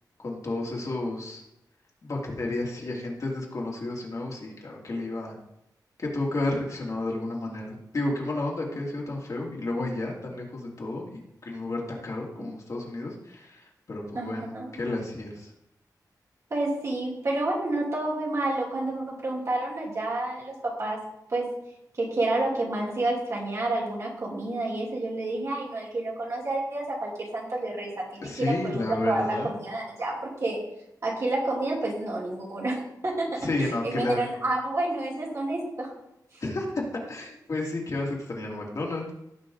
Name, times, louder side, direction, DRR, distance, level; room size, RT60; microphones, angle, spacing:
voice 1, 0.2-1.4 2.0-5.4 6.0-15.5 28.2-29.5 33.4-34.2 36.4-39.1, left 2 dB, 50° left, -2 dB, 2.6 m, -31 dB
voice 2, 14.1-14.7 16.5-21.0 21.3-21.5 22.0-30.6 31.0-35.9 36.3-36.4, right 2 dB, 45° right, -3 dB, 3.0 m, -29 dB
17.0 x 6.0 x 3.9 m, 0.83 s
wide cardioid pair, 140°, 7 cm